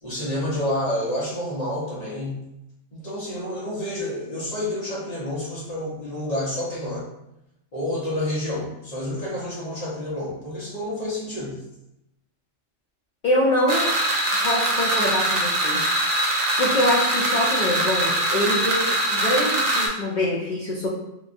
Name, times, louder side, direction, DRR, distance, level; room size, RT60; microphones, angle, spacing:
voice 1, 0.0-2.4 2.9-7.1 7.7-11.6, left 1 dB, 35° left, -7 dB, 0.9 m, -29 dB
voice 2, 13.2-13.9 14.4-15.8 16.6-20.9, left 1 dB, 70° left, -4 dB, 0.4 m, -24 dB
sound 1, 13.7-19.9, right 1 dB, 85° right, 1.0 m, -22 dB
2.9 x 2.3 x 2.5 m, 0.88 s
omnidirectional pair, 1.3 m